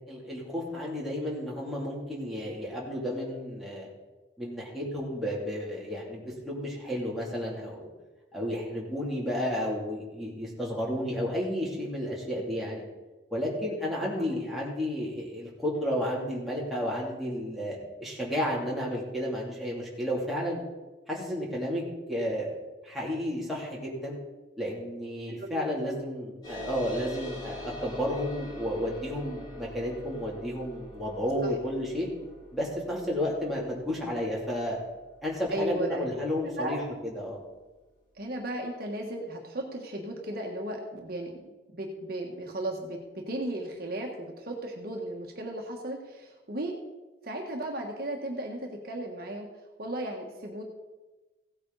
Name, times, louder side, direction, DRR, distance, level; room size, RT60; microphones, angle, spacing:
voice 1, 0.1-3.9 4.4-7.9 8.3-12.8 13.3-20.6 21.1-21.8 22.1-22.5 22.8-24.2 24.6-32.1 32.5-34.8 35.2-37.4, equal, ahead, -6 dB, 2.9 m, -32 dB
sound 1, 26.4-37.4, left 1 dB, 25° left, 5.1 m, -45 dB
voice 2, 35.5-36.0 36.6-36.8 38.2-41.3 41.7-46.7 47.2-49.5 49.8-50.6, right 1 dB, 55° right, 1 dB, 1.5 m, -35 dB
16.5 x 8.7 x 4.1 m, 1.1 s
head